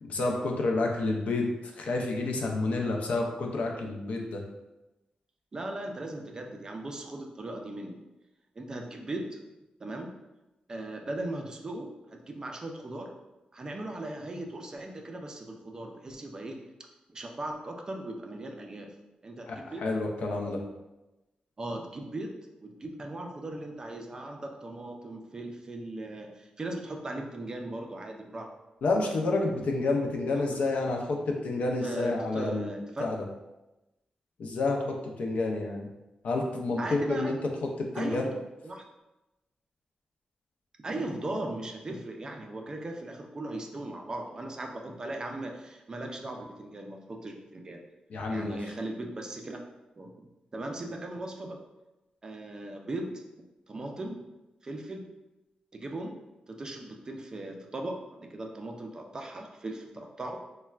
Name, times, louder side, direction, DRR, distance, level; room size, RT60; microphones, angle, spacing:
voice 1, 0.0-4.4 19.5-20.6 28.8-33.2 34.4-35.9 36.2-37.4 37.6-38.3 48.1-48.6, left 2 dB, 65° left, 1 dB, 0.5 m, -29 dB
voice 2, 5.5-8.0 8.6-9.4 9.8-10.1 10.7-13.1 13.5-16.6 17.1-18.9 19.2-19.9 20.4-20.5 21.6-28.5 31.8-33.1 36.8-37.3 37.9-38.8 40.8-47.8 48.3-49.6 50.0-50.1 50.5-51.6 52.2-53.2 53.7-54.2 54.6-55.1 55.7-56.1 56.5-60.4, right 2 dB, 30° right, 2 dB, 0.3 m, -38 dB
4.2 x 2.1 x 2.3 m, 1.0 s
wide cardioid pair, 135°, 2 cm